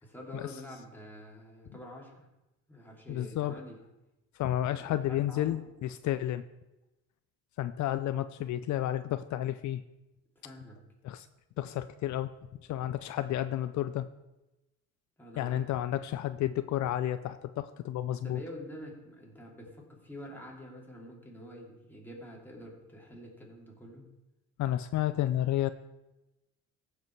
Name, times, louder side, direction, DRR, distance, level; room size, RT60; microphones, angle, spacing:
voice 1, 0.0-2.3 2.7-3.8 4.7-5.7 10.4-10.8 15.2-16.0 18.2-24.1, left 1 dB, 5° left, -2 dB, 3.0 m, -47 dB
voice 2, 3.1-3.5 4.4-6.4 7.6-9.8 11.0-11.3 11.6-12.3 12.7-14.1 15.4-18.4 24.6-25.7, left 12 dB, 70° left, 12 dB, 0.5 m, -31 dB
15.5 x 5.4 x 4.6 m, 1.0 s
cardioid pair, 90°, 30 cm